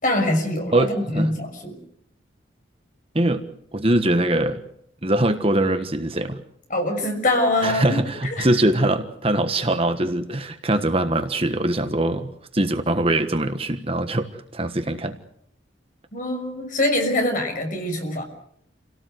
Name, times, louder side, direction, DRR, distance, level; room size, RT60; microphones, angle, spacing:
voice 1, 0.0-1.8 6.7-8.0 8.3-8.5 16.1-18.2, left 1 dB, 45° left, 3 dB, 6.3 m, -23 dB
voice 2, 0.7-1.3 3.1-3.4 3.7-4.6 5.0-6.4 7.6-15.2, right 1 dB, 30° right, 8 dB, 1.4 m, -22 dB
28.5 x 18.0 x 8.0 m, 0.70 s
head